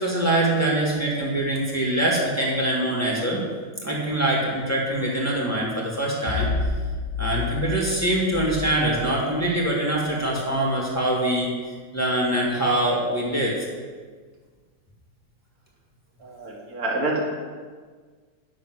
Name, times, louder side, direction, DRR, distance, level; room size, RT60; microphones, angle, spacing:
voice 1, 0.0-3.4 3.8-6.5 7.2-11.5 11.9-13.6, right 1 dB, 10° left, -4 dB, 1.9 m, -24 dB
sound 1, 6.2-9.7, left 4 dB, 35° left, 1.0 m, -30 dB
voice 2, 16.2-17.2, right 2 dB, 60° right, -2 dB, 2.3 m, -27 dB
10.5 x 6.4 x 6.1 m, 1.5 s
omnidirectional pair, 1.7 m